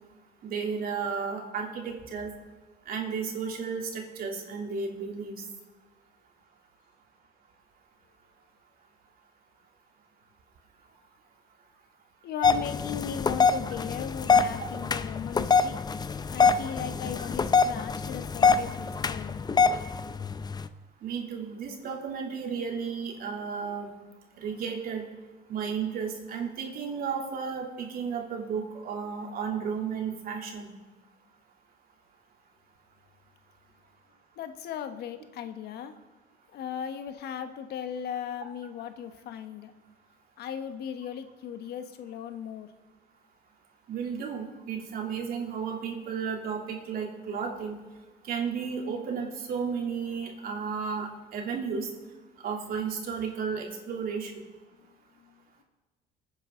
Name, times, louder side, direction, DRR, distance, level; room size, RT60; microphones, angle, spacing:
voice 1, 0.4-2.3 2.9-5.4 17.2-17.3 21.0-23.9 24.4-25.0 25.5-30.7 43.9-47.8 48.2-51.9 52.4-54.3, right 6 dB, 60° right, 1 dB, 3.0 m, -33 dB
voice 2, 12.2-15.8 16.3-19.4 34.4-35.9 36.5-39.7 40.4-42.7 55.2-55.4, left 8 dB, 70° left, 9 dB, 1.3 m, -37 dB
sound 1, 12.4-20.7, left 5 dB, 25° left, 0.6 m, -25 dB
24.5 x 9.7 x 3.8 m, 1.3 s
cardioid pair, 110°, 17 cm